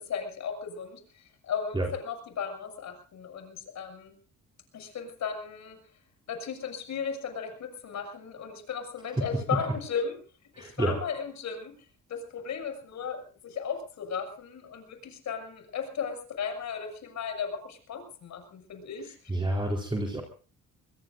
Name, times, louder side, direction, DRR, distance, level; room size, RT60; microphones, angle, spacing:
voice 1, 0.0-4.1 4.7-5.8 6.3-10.2 10.6-11.7 12.1-19.4, left 6 dB, 65° left, 6 dB, 6.9 m, -36 dB
voice 2, 10.5-11.0 19.3-20.2, right 1 dB, 15° right, 1 dB, 4.0 m, -29 dB
24.5 x 22.5 x 2.6 m, 0.38 s
cardioid pair, 90°, 30 cm